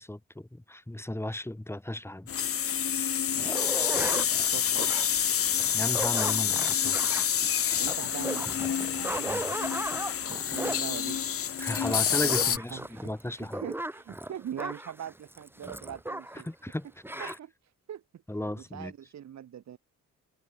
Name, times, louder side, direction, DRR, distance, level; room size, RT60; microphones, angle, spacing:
voice 1, 0.0-2.3 5.7-7.0 9.3-9.4 11.6-13.6 16.5-16.9 17.2-17.4 18.3-18.9, left 1 dB, 10° left, 6.3 m, -35 dB
sound 1, 2.3-12.6, left 9 dB, 50° left, 1.2 m, -28 dB
sound 2, 3.3-16.5 16.7-16.8 17.0-17.4, right 1 dB, 5° right, 6.8 m, -37 dB
voice 2, 3.7-5.1 7.8-9.8 10.2-11.5 11.9-16.5 17.2-17.5 17.9-19.8, right 10 dB, 65° right, 4.0 m, -42 dB
cardioid pair, 90°, 30 cm